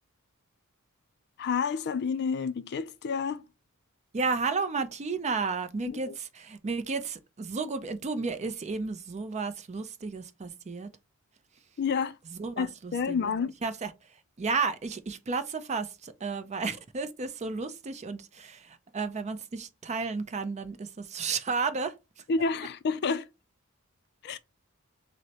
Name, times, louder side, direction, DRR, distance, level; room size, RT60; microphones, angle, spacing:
voice 1, 1.4-3.4 5.9-6.1 11.8-12.2 12.6-13.5 22.3-23.3 24.2-24.4, left 5 dB, 50° left, 0.4 m, -29 dB
voice 2, 4.1-10.9 12.3-13.3 13.6-13.9 14.4-21.9, right 4 dB, 30° right, 0.4 m, -32 dB
6.1 x 2.1 x 2.8 m
head